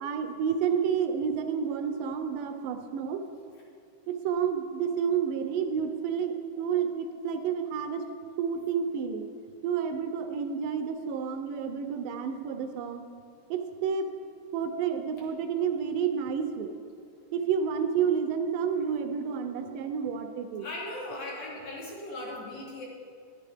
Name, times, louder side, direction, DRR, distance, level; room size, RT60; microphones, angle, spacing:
voice 1, 0.0-3.2 4.1-8.0 8.4-9.3 9.6-13.0 13.5-14.1 14.5-16.7 17.3-20.7, right 7 dB, 80° right, 6 dB, 2.1 m, -30 dB
voice 2, 20.6-22.9, left 1 dB, 60° left, -4 dB, 2.0 m, -38 dB
10.0 x 9.1 x 3.4 m, 2.3 s
omnidirectional pair, 3.9 m